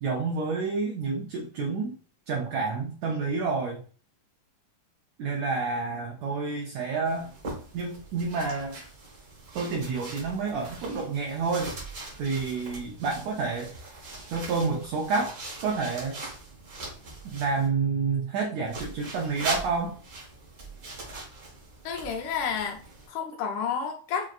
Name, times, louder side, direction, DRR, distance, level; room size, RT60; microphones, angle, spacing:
voice 1, 0.0-2.0 2.3-3.8 5.2-7.3 7.7-8.8 9.5-11.7 12.2-13.7 14.3-16.2 17.2-20.0, right 4 dB, 85° right, 0 dB, 1.5 m, -29 dB
sound 1, 7.0-17.7 18.7-23.1, right 3 dB, 55° right, 1.1 m, -41 dB
voice 2, 21.9-22.8 23.1-24.2, left 7 dB, 75° left, 3 dB, 1.8 m, -30 dB
6.0 x 2.4 x 2.4 m, 0.41 s
omnidirectional pair, 3.8 m